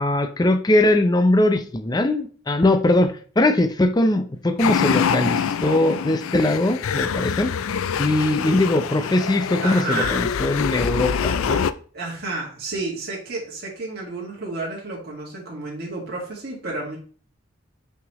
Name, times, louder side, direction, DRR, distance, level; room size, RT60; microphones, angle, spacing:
voice 1, 0.0-7.5 8.0-11.7, left 1 dB, 20° left, 7 dB, 0.5 m, -20 dB
sound 1, 4.6-11.7, left 7 dB, 85° left, 0.4 m, -25 dB
voice 2, 9.6-10.2 11.9-17.0, right 2 dB, 50° right, -4 dB, 1.9 m, -31 dB
5.8 x 5.8 x 3.1 m, 0.42 s
head